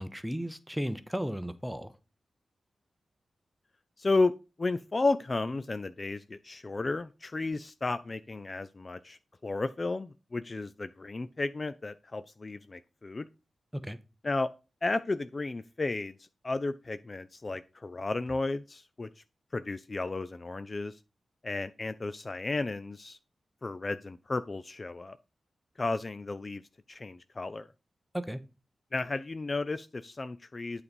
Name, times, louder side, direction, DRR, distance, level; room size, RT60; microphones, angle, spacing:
voice 1, 0.0-1.9 13.7-14.0 28.1-28.4, equal, ahead, 12 dB, 0.7 m, -35 dB
voice 2, 4.0-4.3 4.6-13.3 14.2-14.5 14.8-19.2 19.5-21.0 21.4-23.2 23.6-25.2 25.8-26.6 26.9-27.7 28.9-30.8, left 3 dB, 30° left, 12 dB, 0.3 m, -33 dB
8.5 x 4.0 x 5.3 m, 0.30 s
wide cardioid pair, 115°, 0 cm